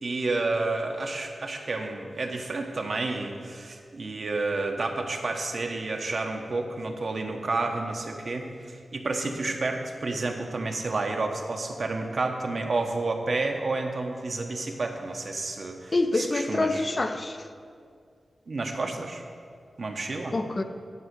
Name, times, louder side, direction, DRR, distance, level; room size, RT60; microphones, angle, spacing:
voice 1, 0.0-16.9 18.5-19.2 19.8-20.3, right 3 dB, 60° right, 3 dB, 1.1 m, -30 dB
voice 2, 15.9-17.5 20.3-20.6, left 2 dB, 35° left, 7 dB, 0.6 m, -26 dB
11.0 x 4.9 x 8.0 m, 2.2 s
wide cardioid pair, 90°, 0 cm